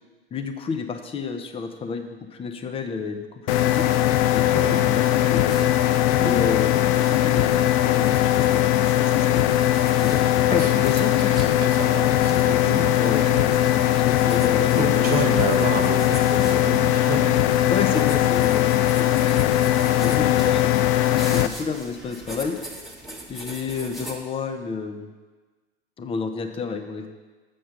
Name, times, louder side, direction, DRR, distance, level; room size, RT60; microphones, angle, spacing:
voice 1, 0.3-3.9 4.3-5.7 6.2-9.4 10.0-11.5 13.0-13.3 13.7-15.1 17.7-19.5 20.0-22.6 23.3-25.1 26.0-27.1, left 5 dB, 20° left, 7 dB, 0.8 m, -30 dB
sound 1, 3.5-21.5, left 13 dB, 40° left, 0.4 m, -20 dB
voice 2, 4.5-4.9 6.2-6.5 10.5-10.9 11.3-13.5 14.7-17.4, right 4 dB, 30° right, 3 dB, 1.4 m, -30 dB
sound 2, 5.5-24.2, right 1 dB, ahead, 1.3 m, -41 dB
7.5 x 6.9 x 5.8 m, 1.3 s
figure-of-eight pair, 85°, 29 cm